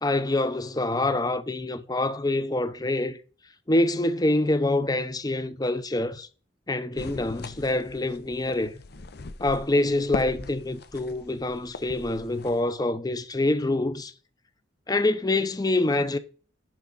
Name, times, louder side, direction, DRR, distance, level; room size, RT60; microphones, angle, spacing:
voice 1, 0.0-3.2 3.7-6.3 6.7-8.8 9.4-14.1 14.9-16.2, left 2 dB, 20° left, 0.7 m, -26 dB
sound 1, 7.0-12.6, left 3 dB, 60° left, 0.7 m, -39 dB
11.0 x 4.7 x 4.0 m
head